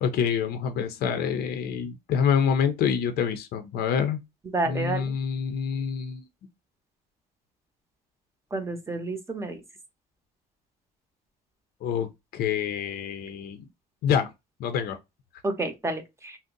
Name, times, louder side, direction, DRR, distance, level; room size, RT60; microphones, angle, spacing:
voice 1, 0.0-4.2 4.7-6.2 11.8-12.1 12.3-13.6 14.0-14.3 14.6-15.0, left 7 dB, 70° left, 0.5 m, -26 dB
voice 2, 4.5-5.1 8.5-9.6 15.4-16.4, right 2 dB, 15° right, 0.6 m, -30 dB
2.6 x 2.0 x 3.6 m
cardioid pair, 110°, 17 cm